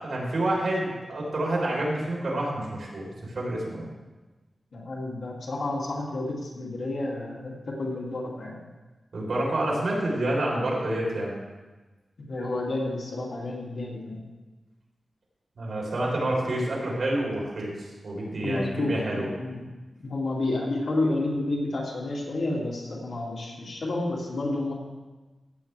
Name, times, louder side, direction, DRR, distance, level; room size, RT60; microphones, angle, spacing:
voice 1, 0.0-3.8 9.1-11.4 15.6-19.3, right 1 dB, 60° right, -4 dB, 3.8 m, -28 dB
voice 2, 4.7-8.6 12.3-14.2 18.4-19.6 20.0-24.7, left 2 dB, 65° left, -3 dB, 2.4 m, -30 dB
15.5 x 8.6 x 3.3 m, 1.2 s
wide cardioid pair, 120°, 0 cm